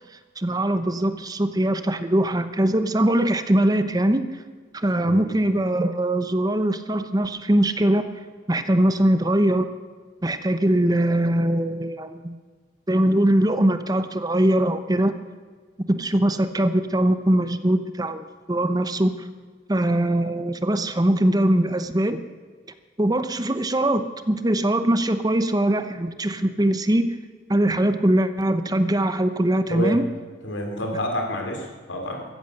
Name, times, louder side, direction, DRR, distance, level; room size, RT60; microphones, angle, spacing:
voice 1, 0.4-4.4 4.7-8.1 8.5-9.7 10.2-12.4 12.9-15.2 15.9-19.3 19.7-22.2 23.0-27.2 27.5-30.0, right 1 dB, 20° right, 10 dB, 0.8 m, -21 dB
voice 2, 29.7-30.0 30.4-32.2, equal, 80° left, 3 dB, 3.3 m, -28 dB
15.5 x 14.0 x 6.6 m, 1.5 s
head